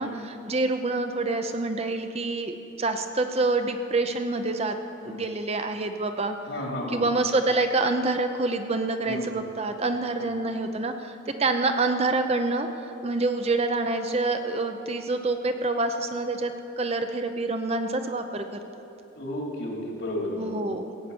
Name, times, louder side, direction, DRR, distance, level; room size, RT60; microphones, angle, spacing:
voice 1, 0.0-4.8 5.0-6.4 6.9-12.7 13.0-18.6 20.4-21.1, right 2 dB, 30° right, 7 dB, 0.7 m, -27 dB
voice 2, 6.5-7.0 9.0-9.3 19.1-20.6, left 1 dB, 65° left, -1 dB, 2.7 m, -32 dB
16.5 x 8.6 x 6.9 m, 2.9 s
head